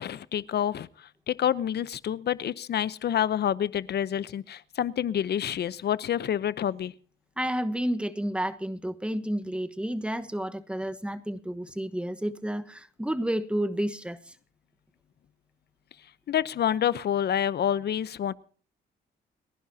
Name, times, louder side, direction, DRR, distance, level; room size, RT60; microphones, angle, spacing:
voice 1, 0.0-6.9 16.3-18.3, left 9 dB, 55° left, 0.8 m, -28 dB
voice 2, 7.4-14.4, right 1 dB, 5° right, 1.3 m, -31 dB
29.5 x 11.0 x 2.8 m
cardioid pair, 90°, 20 cm